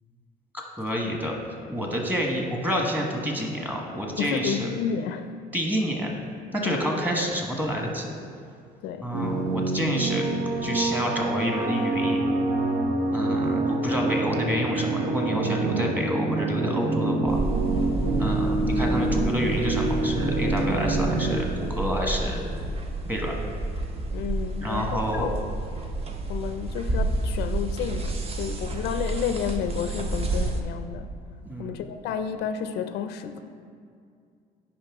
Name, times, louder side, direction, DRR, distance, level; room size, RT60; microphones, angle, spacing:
voice 1, 0.5-1.3 1.7-4.7 5.5-6.1 6.5-8.2 9.0-10.2 10.6-12.2 13.1-17.4 18.2-22.5 23.1-23.3 24.6-25.3 31.4-31.8, equal, 10° right, 0 dB, 1.3 m, -28 dB
voice 2, 4.2-5.3 6.6-6.9 8.8-9.1 24.1-25.4 26.3-31.1 31.6-33.4, left 8 dB, 80° left, 9 dB, 0.5 m, -31 dB
sound 1, 9.1-21.4, right 2 dB, 90° right, 1.0 m, -26 dB
sound 2, 17.3-30.6, right 2 dB, 35° right, 0.8 m, -30 dB
9.8 x 5.2 x 3.6 m, 2.3 s
cardioid pair, 110°, 17 cm